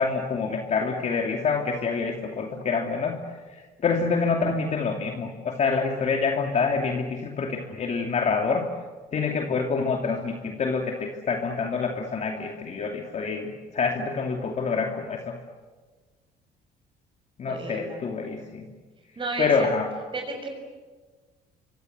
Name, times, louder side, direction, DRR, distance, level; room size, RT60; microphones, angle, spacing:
voice 1, 0.0-3.2 3.5-8.6 9.1-15.3 17.4-18.7 19.4-19.9, left 5 dB, 45° left, 2 dB, 2.8 m, -26 dB
voice 2, 17.5-18.0 19.1-19.7 20.1-20.5, right 3 dB, 30° right, 2 dB, 6.8 m, -32 dB
27.0 x 25.0 x 8.1 m, 1.4 s
cardioid pair, 110°, 17 cm